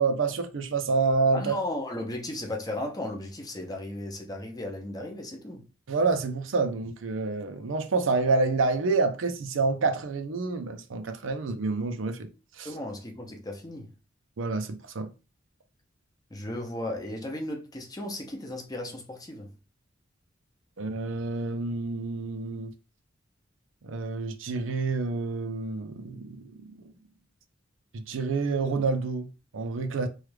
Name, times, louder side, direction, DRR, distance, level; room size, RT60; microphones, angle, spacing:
voice 1, 0.0-1.5 5.9-12.3 12.6-12.7 14.4-15.1 20.8-22.7 23.8-26.8 27.9-30.1, right 3 dB, 75° right, 0.5 m, -28 dB
voice 2, 1.3-5.7 12.6-13.9 16.3-19.5, left 1 dB, 20° left, 0.7 m, -35 dB
3.1 x 2.3 x 3.2 m
head